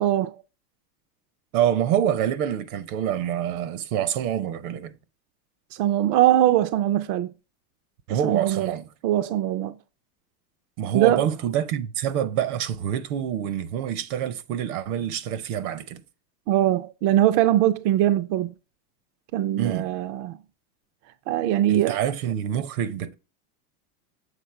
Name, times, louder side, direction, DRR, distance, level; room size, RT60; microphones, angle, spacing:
voice 1, 0.0-0.4 5.8-7.3 8.1-8.7 9.0-9.8 10.9-11.2 16.5-18.5 19.3-20.4 21.3-22.0, right 13 dB, 45° right, 0.5 m, -21 dB
voice 2, 1.5-4.9 8.1-8.9 10.8-16.0 19.6-19.9 21.7-23.2, right 10 dB, 70° right, 0.9 m, -26 dB
7.3 x 3.7 x 4.7 m
supercardioid pair, 145°, 46 cm